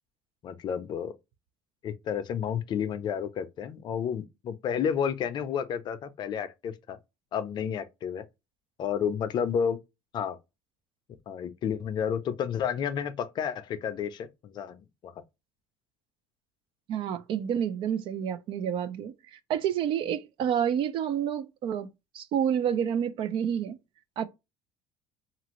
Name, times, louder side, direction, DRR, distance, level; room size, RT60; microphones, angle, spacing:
voice 1, 0.4-1.1 1.8-7.0 7.3-8.2 8.8-9.8 10.1-10.4 11.3-15.1, left 8 dB, 45° left, 0.5 m, -31 dB
voice 2, 16.9-21.9 22.1-23.8 24.2-24.3, right 9 dB, 55° right, 0.5 m, -29 dB
2.8 x 2.5 x 2.9 m
supercardioid pair, 100°, 10 cm